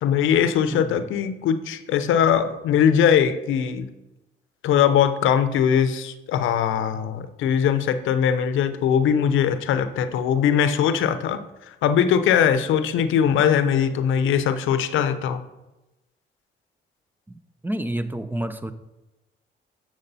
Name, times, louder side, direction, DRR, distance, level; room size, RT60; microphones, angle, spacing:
voice 1, 0.0-3.9 4.6-11.4 11.7-15.4, left 8 dB, 80° left, 11 dB, 0.6 m, -21 dB
voice 2, 0.7-1.1 17.3-17.4 17.6-18.7, right 1 dB, 10° right, 11 dB, 0.5 m, -29 dB
7.9 x 6.3 x 4.1 m, 0.99 s
cardioid pair, 90°, 20 cm